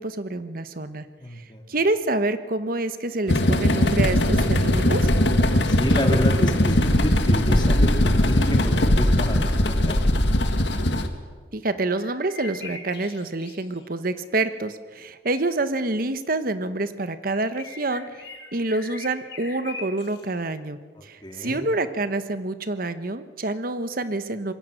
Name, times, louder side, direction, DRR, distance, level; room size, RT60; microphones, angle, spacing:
voice 1, 0.0-1.1 1.7-5.1 11.5-18.2 18.5-24.5, right 2 dB, 55° right, 11 dB, 1.2 m, -27 dB
voice 2, 1.2-1.7 5.7-10.0 21.0-21.6, left 1 dB, 25° left, 3 dB, 2.6 m, -30 dB
sound 1, 3.3-11.1, left 1 dB, 90° left, 1.9 m, -20 dB
sound 2, 12.0-13.9 17.3-20.2, left 3 dB, 70° left, 5.5 m, -41 dB
25.5 x 22.0 x 6.6 m, 1.5 s
head